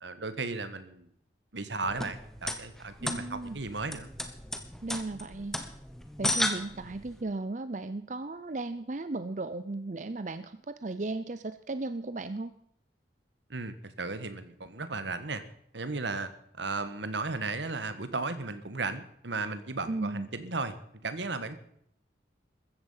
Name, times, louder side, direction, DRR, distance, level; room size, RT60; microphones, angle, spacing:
voice 1, 0.0-1.1 1.5-4.1 13.5-15.4 15.7-16.3 16.6-20.8 21.0-21.6, right 3 dB, 75° right, 12 dB, 1.5 m, -35 dB
sound 1, 1.8-7.2, left 1 dB, ahead, 1.2 m, -34 dB
voice 2, 3.0-3.6 4.8-5.6 6.2-12.5 19.9-20.3, right 2 dB, 40° right, 12 dB, 0.6 m, -35 dB
14.5 x 14.0 x 5.7 m, 0.68 s
head